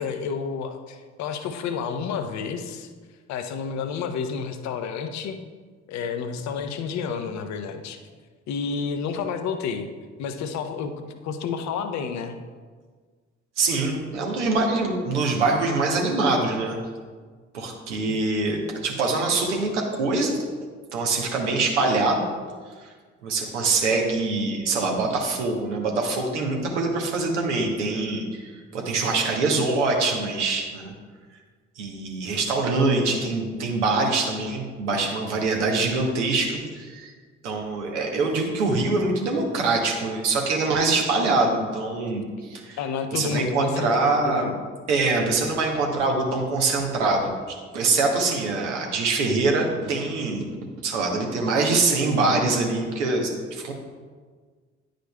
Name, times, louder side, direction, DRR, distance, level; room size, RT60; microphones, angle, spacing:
voice 1, 0.0-2.9 3.3-5.4 5.9-8.0 8.5-9.9 10.2-12.4 18.1-18.2 42.8-44.5, left 6 dB, 50° left, 8 dB, 0.7 m, -30 dB
voice 2, 13.6-16.8 17.5-20.4 20.9-22.3 22.8-22.9 23.2-30.9 31.8-37.1 37.4-42.8 43.1-44.5 44.9-47.3 47.7-50.5 50.8-53.7, right 3 dB, 75° right, 1 dB, 1.0 m, -24 dB
10.0 x 5.1 x 2.2 m, 1.5 s
figure-of-eight pair, 45°, 35 cm